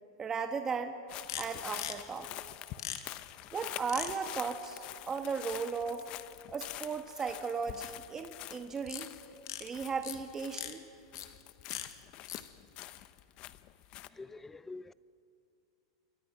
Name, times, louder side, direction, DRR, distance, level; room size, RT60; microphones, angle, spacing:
voice 1, 0.2-1.0 1.3-2.3 3.5-6.1 6.5-9.1 9.6-10.8, right 5 dB, 20° right, 6 dB, 1.4 m, -36 dB
sound 1, 1.1-10.8 11.1-14.1, left 15 dB, 45° left, 0.9 m, -46 dB
sound 2, 1.3-1.5 1.7-1.9 2.8-3.0 3.9-4.1 8.9-9.1 9.4-9.7 10.0-10.2 10.5-10.7 11.2-11.3 11.7-11.9 12.3-12.4 12.8-12.9, left 11 dB, 75° left, 2.1 m, -39 dB
voice 2, 14.1-14.9, left 3 dB, 10° left, 18 dB, 0.6 m, -46 dB
29.0 x 23.5 x 5.9 m, 2.6 s
hypercardioid pair, 115°, 2 cm